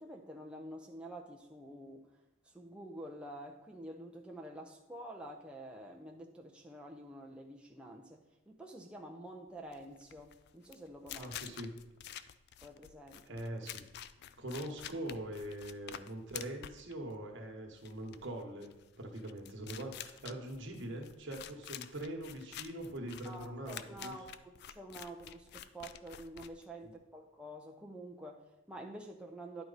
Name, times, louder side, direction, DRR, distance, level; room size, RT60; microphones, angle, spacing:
voice 1, 0.0-2.1 2.4-11.3 12.6-13.4 23.2-29.6, right 1 dB, 5° right, -1 dB, 0.5 m, -48 dB
sound 1, 9.6-27.0, left 10 dB, 55° left, 0.3 m, -49 dB
voice 2, 11.1-11.8 13.3-13.9 14.4-24.1 26.8-26.9, right 1 dB, 60° right, 2 dB, 1.1 m, -43 dB
10.5 x 4.5 x 4.0 m, 0.96 s
head